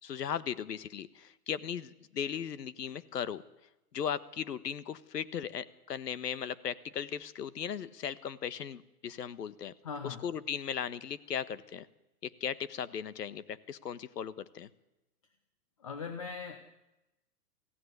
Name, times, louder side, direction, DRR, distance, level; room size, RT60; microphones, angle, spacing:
voice 1, 0.0-3.4 3.9-9.7 10.0-11.9 12.2-14.7, left 8 dB, 80° left, 15 dB, 1.5 m, -37 dB
voice 2, 9.8-10.2 15.8-16.6, left 5 dB, 20° left, 6 dB, 0.9 m, -39 dB
23.0 x 16.0 x 9.7 m, 0.97 s
hypercardioid pair, 180°, 48 cm